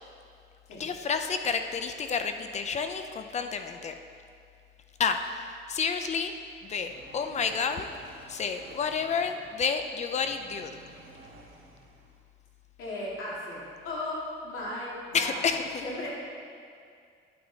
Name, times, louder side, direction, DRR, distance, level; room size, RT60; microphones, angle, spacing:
voice 1, 0.8-3.9 5.0-6.3 6.6-7.9 8.3-10.7 15.1-16.1, left 5 dB, 35° left, 7 dB, 0.5 m, -30 dB
sound 1, 6.8-9.8 10.2-12.2, right 2 dB, 90° right, 2.5 m, -52 dB
voice 2, 12.8-14.2 14.4-16.1, left 1 dB, 85° left, -7 dB, 2.6 m, -36 dB
10.5 x 8.8 x 4.1 m, 2.3 s
cardioid pair, 155°, 21 cm